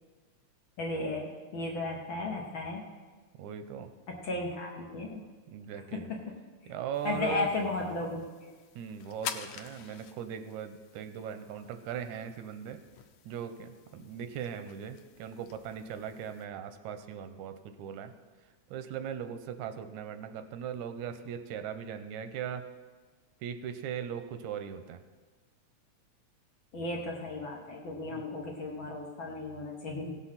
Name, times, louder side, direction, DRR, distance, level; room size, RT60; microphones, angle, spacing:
voice 1, 0.8-2.8 4.1-5.2 5.9-6.3 7.0-8.5 26.7-30.2, left 2 dB, 55° left, -1 dB, 1.6 m, -35 dB
voice 2, 3.4-3.9 5.5-6.1 6.7-7.5 8.8-12.8 13.3-18.1 18.7-22.6 23.4-25.0 28.1-28.2, right 8 dB, 90° right, 9 dB, 2.1 m, -39 dB
sound 1, 6.9-16.4, left 9 dB, 90° left, 2.0 m, -48 dB
16.5 x 6.3 x 5.7 m, 1.4 s
omnidirectional pair, 3.3 m